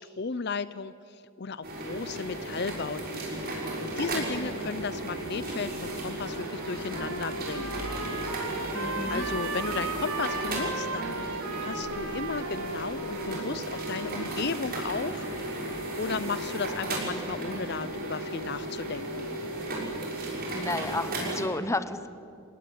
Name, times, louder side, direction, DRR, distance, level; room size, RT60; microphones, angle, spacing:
voice 1, 0.0-3.2 3.8-7.7 8.8-11.2 11.6-15.3 16.0-19.3, left 4 dB, 45° left, 15 dB, 0.6 m, -34 dB
sound 1, 1.6-21.4, right 1 dB, 40° right, 6.0 m, -34 dB
Trumpet, 6.2-14.6, right 3 dB, 75° right, 2.6 m, -37 dB
voice 2, 8.7-9.3 20.5-22.1, left 2 dB, 15° left, 12 dB, 0.8 m, -32 dB
28.5 x 18.0 x 9.4 m, 2.5 s
head